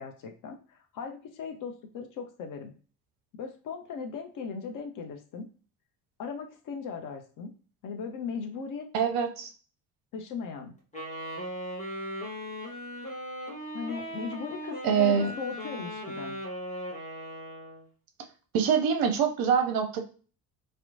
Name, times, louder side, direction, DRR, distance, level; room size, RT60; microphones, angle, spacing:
voice 1, 0.0-2.7 3.3-5.5 6.2-7.5 7.8-8.9 10.1-10.7 13.7-16.4, left 5 dB, 45° left, 5 dB, 0.5 m, -38 dB
voice 2, 8.9-9.5 14.8-15.3 18.5-20.0, right 7 dB, 50° right, 5 dB, 0.6 m, -24 dB
Wind instrument woodwind instrument, 10.9-17.9, equal, 15° left, 1.0 m, -38 dB
2.9 x 2.0 x 2.5 m, 0.39 s
hypercardioid pair, 55°, 47 cm